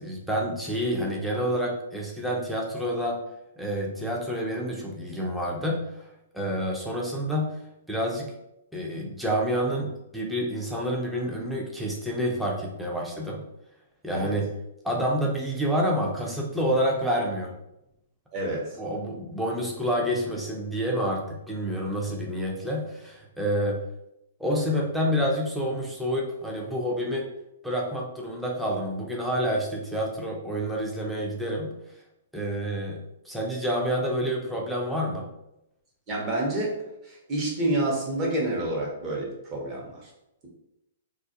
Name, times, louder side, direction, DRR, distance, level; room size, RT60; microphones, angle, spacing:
voice 1, 0.0-3.2 3.6-6.1 6.3-7.6 7.9-8.3 8.7-13.4 14.0-14.5 14.8-17.5 18.8-23.8 24.4-27.3 27.6-31.7 32.3-35.3, equal, ahead, -3 dB, 0.5 m, -28 dB
voice 2, 18.3-18.7 36.1-36.7 37.0-40.1, right 1 dB, 30° right, -2 dB, 0.8 m, -28 dB
2.3 x 2.0 x 2.6 m, 0.84 s
hypercardioid pair, 130°, 0 cm